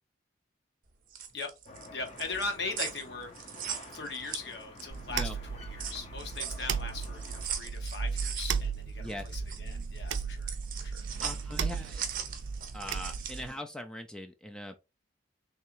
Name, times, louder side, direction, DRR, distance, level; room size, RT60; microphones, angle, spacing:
sound 1, 0.9-5.1 5.4-13.5, right 8 dB, 45° right, 0.6 m, -40 dB
sound 2, 1.7-7.5, left 2 dB, 35° left, 0.7 m, -50 dB
voice 1, 1.9-3.6 3.9-11.0, left 3 dB, 65° left, 1.1 m, -40 dB
sound 3, 4.9-13.5, right 6 dB, 85° right, 0.4 m, -36 dB
voice 2, 9.0-9.4 11.2-12.0 12.7-14.8, left 1 dB, 5° left, 0.4 m, -41 dB
3.6 x 3.3 x 3.0 m
head